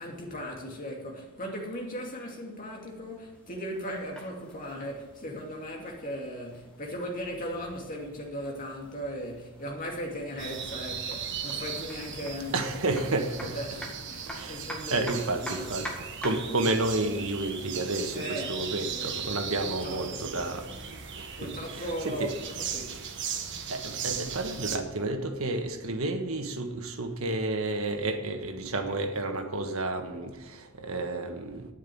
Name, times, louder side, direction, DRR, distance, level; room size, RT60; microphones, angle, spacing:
voice 1, 0.0-12.6 12.9-13.0 13.5-15.8 18.1-18.5 18.9-19.1 19.6-20.7 21.4-23.0, equal, 40° left, 2.6 m, -38 dB
sound 1, 3.3-16.6, equal, 5° left, 2.0 m, -46 dB
sound 2, 10.4-24.8, right 7 dB, 55° right, 1.4 m, -38 dB
voice 2, 12.5-13.6 14.3-14.6 14.9-15.9 16.2-20.6 21.2-22.3 23.7-31.7, right 2 dB, 75° right, 1.5 m, -31 dB
9.7 x 9.0 x 8.6 m
head